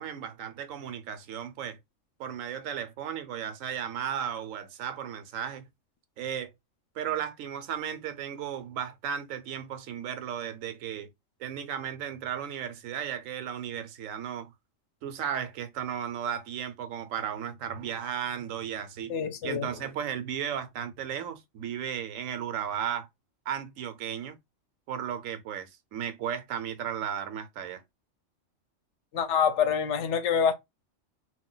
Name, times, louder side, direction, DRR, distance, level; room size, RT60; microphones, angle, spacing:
voice 1, 0.0-1.8 2.2-5.7 6.2-6.5 6.9-11.1 11.4-14.5 15.0-19.1 19.4-23.1 23.5-24.4 24.9-27.8, right 9 dB, 85° right, 1.0 m, -35 dB
voice 2, 19.1-19.7 29.1-30.5, left 7 dB, 70° left, 0.9 m, -26 dB
2.5 x 2.2 x 3.8 m
omnidirectional pair, 1.3 m